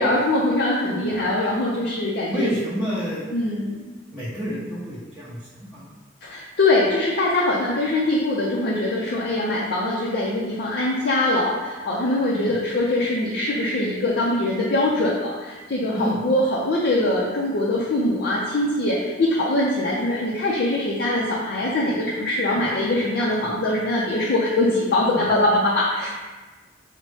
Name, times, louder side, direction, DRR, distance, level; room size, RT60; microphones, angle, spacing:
voice 1, 0.0-2.5 3.3-3.9 6.2-26.1, left 1 dB, 55° left, -5 dB, 0.5 m, -22 dB
voice 2, 2.3-3.2 4.1-5.9 12.3-12.5 15.9-16.1 21.9-22.0 22.5-22.7 23.4-23.5 25.1-25.3, equal, 5° left, -13 dB, 0.8 m, -29 dB
5.1 x 2.1 x 3.2 m, 1.2 s
head